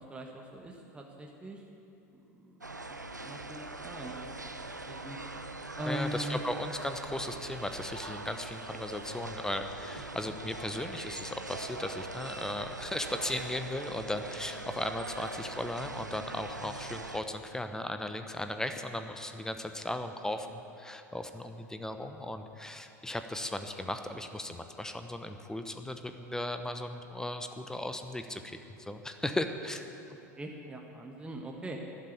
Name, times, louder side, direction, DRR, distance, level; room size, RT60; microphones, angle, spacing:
voice 1, 0.0-1.6 2.4-2.6 2.9-4.5 4.9-5.2 5.7-6.4 16.6-16.8 30.4-31.8, right 1 dB, 10° right, 0 dB, 1.5 m, -41 dB
sound 1, 2.6-17.2, right 2 dB, 85° right, 0.7 m, -42 dB
voice 2, 5.9-29.8, left 1 dB, 5° left, 7 dB, 0.9 m, -37 dB
12.5 x 12.0 x 8.3 m, 2.8 s
figure-of-eight pair, 80°, 9 cm